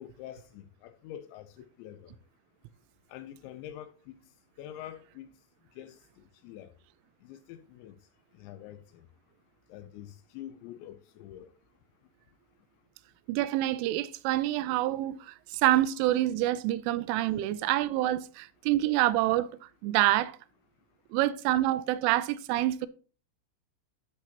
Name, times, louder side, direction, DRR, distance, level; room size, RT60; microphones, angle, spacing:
voice 1, 0.0-2.1 3.1-4.2 4.6-5.3 5.8-6.7 7.3-8.0 8.4-9.1 9.7-11.5, left 11 dB, 85° left, 2.7 m, -46 dB
voice 2, 13.3-20.4 21.1-22.9, right 15 dB, 85° right, 3.1 m, -27 dB
12.0 x 6.0 x 2.8 m
omnidirectional pair, 5.6 m